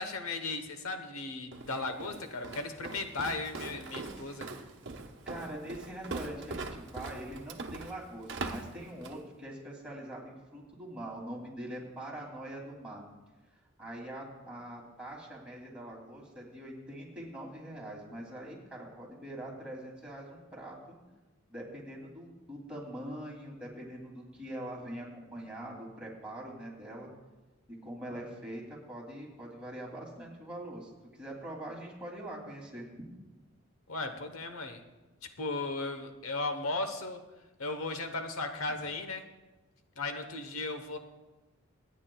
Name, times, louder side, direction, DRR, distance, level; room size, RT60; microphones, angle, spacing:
voice 1, 0.0-4.5 33.9-34.8 35.4-37.2 37.6-39.2 40.0-41.0, left 3 dB, 80° left, 7 dB, 1.1 m, -36 dB
Walk footsteps, 1.5-9.3, right 3 dB, 55° right, 1.0 m, -42 dB
voice 2, 5.3-13.0 13.8-21.0 21.5-27.1 27.8-33.0, right 1 dB, 5° right, -4 dB, 2.7 m, -43 dB
27.0 x 9.8 x 2.3 m, 1.1 s
head